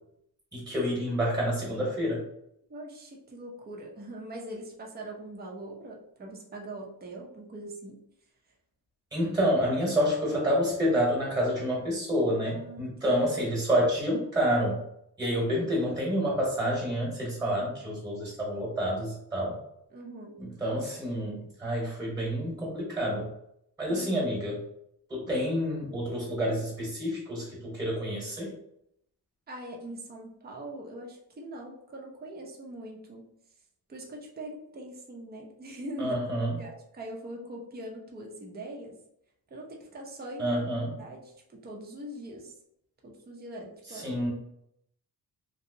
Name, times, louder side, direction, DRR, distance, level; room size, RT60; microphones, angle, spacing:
voice 1, 0.5-2.2 9.1-14.8 15.2-19.6 20.4-23.3 23.8-24.6 25.1-28.5 36.0-36.6 40.4-41.0 43.9-44.3, equal, 10° right, -4 dB, 1.2 m, -28 dB
voice 2, 2.7-8.0 12.5-13.2 19.9-20.4 23.9-24.4 29.5-33.2 33.9-36.1 36.6-38.9 39.5-40.5 41.0-42.5 43.0-44.1, right 1 dB, 25° right, -1 dB, 0.6 m, -42 dB
3.1 x 2.7 x 2.7 m, 0.75 s
wide cardioid pair, 135°, 38 cm